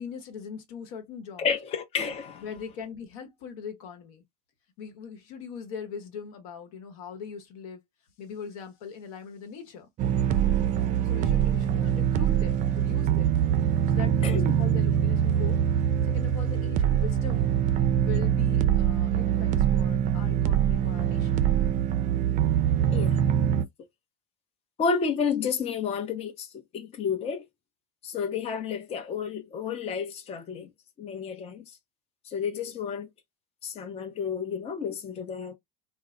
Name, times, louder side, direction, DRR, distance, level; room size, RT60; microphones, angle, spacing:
voice 1, 0.0-1.5 2.4-4.2 4.8-7.8 8.2-9.9 11.0-13.4 13.9-15.6 16.0-17.5 18.0-21.5, left 6 dB, 80° left, 1.0 m, -41 dB
voice 2, 1.4-2.4 14.2-14.6 22.9-23.2 24.8-27.4 28.0-30.7 31.0-31.6 32.3-33.1 33.6-35.5, left 6 dB, 35° left, 0.6 m, -31 dB
sound 1, 10.0-23.6, right 9 dB, 45° right, 0.4 m, -24 dB
2.1 x 2.0 x 3.6 m
supercardioid pair, 105°, 18 cm